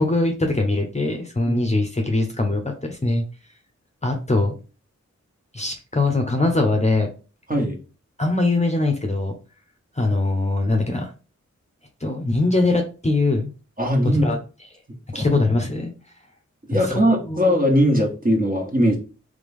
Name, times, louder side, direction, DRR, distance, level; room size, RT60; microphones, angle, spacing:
voice 1, 0.0-3.2 4.0-4.5 5.5-7.1 8.2-9.3 10.0-11.1 12.0-13.5 14.2-14.4 15.1-15.9 16.7-17.0 17.3-17.4, left 2 dB, 25° left, 3 dB, 0.9 m, -22 dB
voice 2, 7.5-7.8 13.8-14.4 15.1-15.3 16.7-19.0, equal, 30° right, 0 dB, 1.6 m, -20 dB
3.5 x 3.5 x 3.6 m, 0.34 s
cardioid pair, 60°, 30 cm